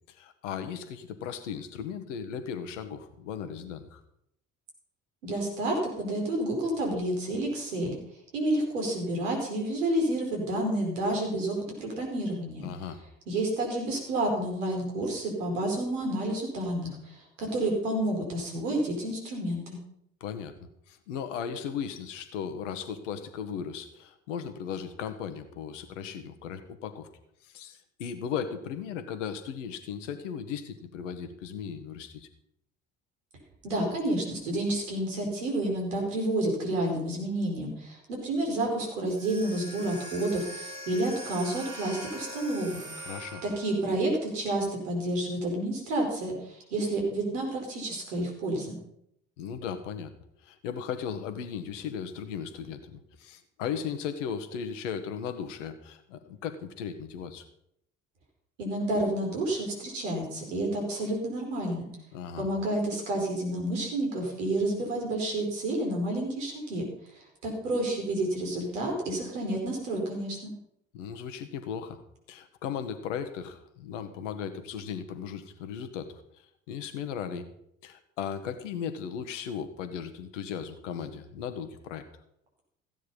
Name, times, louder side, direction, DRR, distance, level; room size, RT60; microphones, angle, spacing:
voice 1, 0.1-4.0 12.6-13.0 20.2-27.1 27.4-32.3 43.0-43.4 49.4-50.1 50.4-57.4 62.1-62.5 70.9-72.0 72.3-76.2 76.7-77.5 77.8-82.0, left 7 dB, 75° left, 9 dB, 1.6 m, -37 dB
voice 2, 5.2-7.9 8.3-12.7 13.3-19.8 33.6-42.9 43.4-48.8 58.6-61.9 62.4-66.9 67.4-70.5, right 1 dB, 75° right, 1 dB, 4.7 m, -30 dB
sound 1, 39.1-43.8, equal, 60° right, 4.7 m, -42 dB
15.5 x 9.5 x 5.4 m, 0.74 s
figure-of-eight pair, 55°, 37 cm